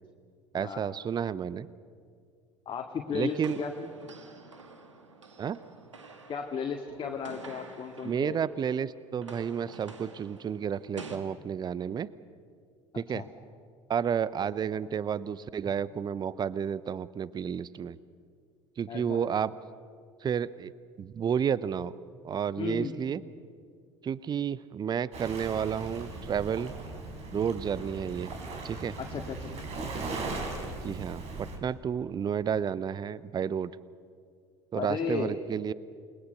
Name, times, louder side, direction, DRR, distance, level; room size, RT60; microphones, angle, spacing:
voice 1, 0.5-1.7 3.1-3.6 5.4-5.6 8.0-12.1 12.9-13.2 13.9-18.0 18.8-19.5 20.2-20.7 21.0-21.9 22.2-23.2 24.0-26.7 27.3-28.3 28.6-29.0 29.9-30.3 30.6-33.7 34.7-35.7, right 8 dB, 30° right, 19 dB, 0.7 m, -31 dB
voice 2, 2.7-3.9 6.3-8.4 13.1-13.3 18.9-19.2 22.6-22.9 29.0-29.7 34.7-35.3, left 6 dB, 35° left, 2 dB, 2.0 m, -34 dB
sound 1, 3.3-8.7 9.0-11.2, right 4 dB, 85° right, 2.0 m, -49 dB
Waves surf, 25.1-31.6, right 3 dB, 45° right, 4.7 m, -38 dB
29.0 x 21.0 x 6.7 m, 2.1 s
figure-of-eight pair, 65°, 15 cm